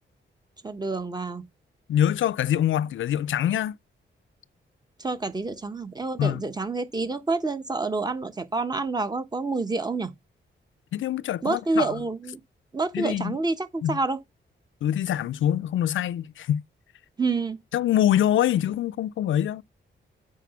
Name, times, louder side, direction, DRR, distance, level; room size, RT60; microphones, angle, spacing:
voice 1, 0.6-1.4 5.0-10.1 11.4-12.4 12.7-14.2 17.2-17.6, right 3 dB, 20° right, 1.1 m, -28 dB
voice 2, 1.9-3.7 6.2-6.4 10.9-11.9 12.9-13.4 13.8-14.0 14.8-16.6 17.7-19.6, left 11 dB, 80° left, 0.4 m, -24 dB
8.3 x 5.0 x 5.7 m
wide cardioid pair, 115°, 20 cm